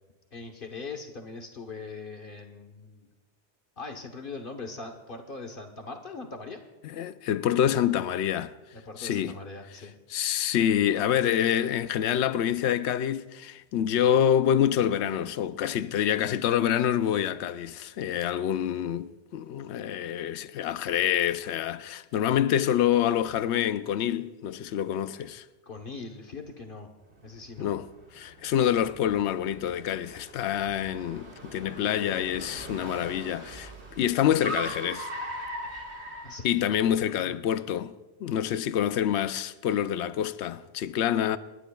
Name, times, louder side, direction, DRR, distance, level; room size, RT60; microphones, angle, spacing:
voice 1, 0.3-3.1 3.8-6.6 8.7-9.9 25.7-26.9 27.2-27.7 36.2-36.7 37.2-37.4, left 3 dB, 55° left, 1.2 m, -41 dB
voice 2, 6.8-8.5 9.0-9.4 10.1-25.5 27.6-35.1 36.4-37.9 38.2-41.4, left 10 dB, 80° left, 0.9 m, -27 dB
Car, 27.2-37.0, right 1 dB, 75° right, 2.1 m, -41 dB
29.5 x 11.0 x 2.3 m
omnidirectional pair, 1.1 m